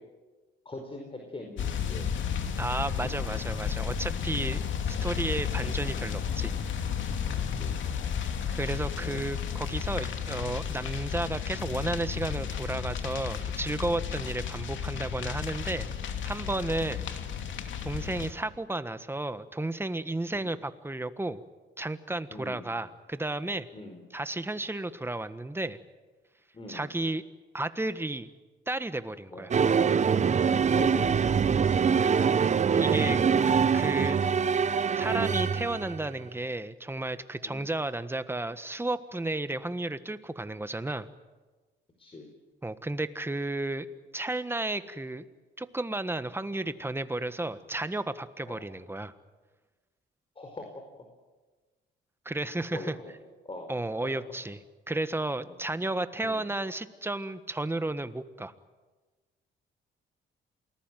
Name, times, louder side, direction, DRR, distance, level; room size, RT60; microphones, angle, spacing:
voice 1, 0.6-2.1 7.5-7.8 9.0-9.2 14.1-14.3 16.8-17.0 20.3-20.6 22.3-22.8 23.7-24.0 26.5-26.9 29.3-29.5 30.8-31.1 32.9-33.2 37.4-37.7 42.0-42.3 46.3-46.4 48.5-48.7 50.3-50.6 52.7-53.1 53.4-53.7 55.4-55.5 56.2-56.5, left 2 dB, 30° left, 3 dB, 4.9 m, -42 dB
sound 1, 1.6-18.3, left 7 dB, 70° left, 2.7 m, -33 dB
voice 2, 2.6-4.6 4.9-6.5 6.9-7.1 8.5-15.9 16.2-17.0 17.8-21.4 21.8-23.7 24.1-25.8 26.7-27.2 27.5-28.3 28.7-29.5 32.7-33.2 33.7-34.2 34.9-41.1 42.6-43.9 44.1-45.2 45.6-49.1 52.2-52.9 53.7-58.5, right 2 dB, 10° right, 12 dB, 1.5 m, -33 dB
sound 2, 29.5-36.1, right 6 dB, 35° right, 0.8 m, -24 dB
28.0 x 19.5 x 9.3 m, 1.3 s
cardioid pair, 90°, 20 cm